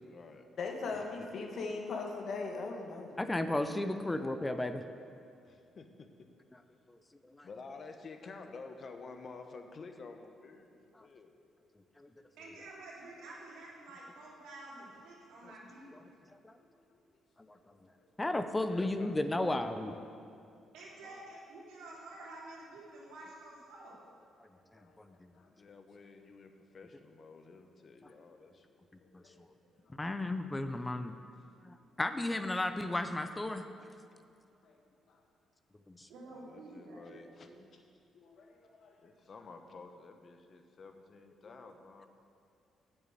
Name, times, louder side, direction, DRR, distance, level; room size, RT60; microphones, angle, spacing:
voice 1, 0.0-0.5 0.9-1.3 5.4-6.1 7.4-11.3 18.7-20.3 21.0-21.2 25.5-28.8 36.3-37.5 39.0-42.1, left 4 dB, 45° left, 6 dB, 1.0 m, -51 dB
voice 2, 0.6-3.2 16.8-16.9 18.0-18.1 24.5-25.0 25.3-25.5 28.0-28.2 29.0-29.4 34.6-34.8 35.1-35.2 38.1-39.0, left 4 dB, 65° left, 1 dB, 1.6 m, -41 dB
voice 3, 3.2-4.8 6.5-6.6 6.9-7.5 11.0-11.1 12.0-12.1 15.4-15.5 15.9-16.0 16.3-16.6 17.4-17.9 18.2-20.0 24.4-25.3 29.1-29.5 29.9-31.2 31.6-33.9 35.9-36.1, left 2 dB, 15° left, 9 dB, 0.6 m, -35 dB
voice 4, 12.3-16.1 20.7-24.0 36.1-37.6, right 2 dB, 90° right, -5 dB, 3.1 m, -50 dB
8.0 x 7.2 x 8.2 m, 2.5 s
cardioid pair, 90°, 0 cm